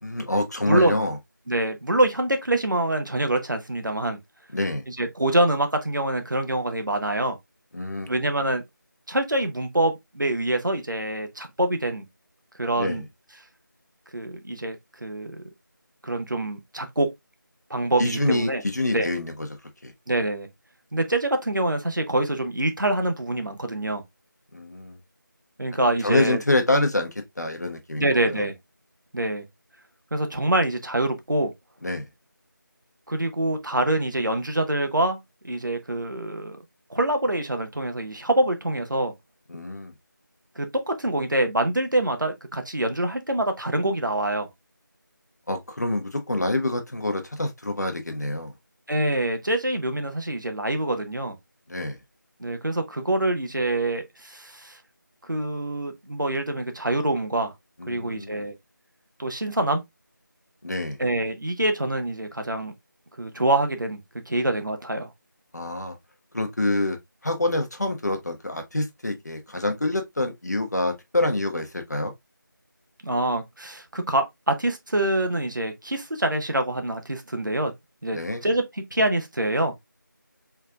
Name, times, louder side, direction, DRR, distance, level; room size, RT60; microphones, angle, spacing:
voice 1, 0.0-1.2 4.5-4.8 7.7-8.1 12.8-13.0 18.0-19.5 19.8-19.9 24.5-25.0 26.0-28.0 28.3-28.4 31.8-32.1 39.5-39.9 45.5-48.5 51.7-52.0 57.8-58.5 60.6-61.0 65.5-66.0 66.3-72.1 78.1-78.4, left 1 dB, 55° left, 1.1 m, -26 dB
voice 2, 0.6-1.0 1.5-4.2 4.9-7.4 8.1-8.6 9.1-12.1 12.6-13.0 14.1-14.8 15.0-15.5 16.0-17.1 17.7-18.6 18.9-19.1 20.1-20.5 20.9-24.0 25.6-26.4 28.0-28.6 29.1-29.5 30.1-31.5 33.1-35.2 35.4-36.6 36.9-39.1 40.6-44.5 48.9-51.4 52.4-54.8 55.2-57.5 57.9-58.5 59.2-59.8 61.0-62.7 63.2-65.1 73.0-77.7 78.0-79.7, right 1 dB, 70° right, 1.2 m, -25 dB
4.5 x 3.7 x 2.3 m
figure-of-eight pair, 170°, 11 cm